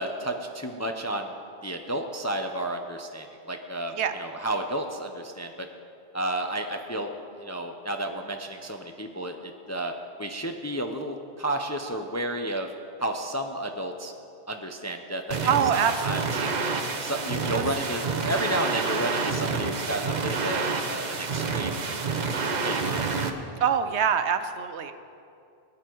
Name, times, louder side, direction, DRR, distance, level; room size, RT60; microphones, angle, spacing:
voice 1, 0.0-1.3 1.6-5.7 6.1-9.9 10.2-12.7 13.0-14.1 14.5-16.2 17.0-21.8 22.6-23.3, right 1 dB, 20° left, 4 dB, 0.5 m, -32 dB
sound 1, 15.3-23.3, right 4 dB, 45° right, 0.9 m, -28 dB
voice 2, 15.5-16.5 23.6-24.9, right 7 dB, 75° right, 10 dB, 1.0 m, -25 dB
19.0 x 9.4 x 4.6 m, 2.6 s
omnidirectional pair, 1.2 m